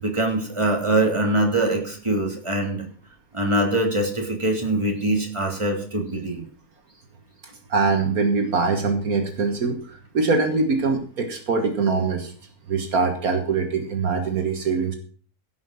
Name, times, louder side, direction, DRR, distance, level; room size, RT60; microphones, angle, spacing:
voice 1, 0.0-2.8 3.3-6.4, right 1 dB, 20° right, 1 dB, 3.2 m, -23 dB
voice 2, 7.7-12.3 12.7-14.9, right 4 dB, 70° right, 5 dB, 1.9 m, -23 dB
16.5 x 5.9 x 6.3 m, 0.43 s
omnidirectional pair, 1.6 m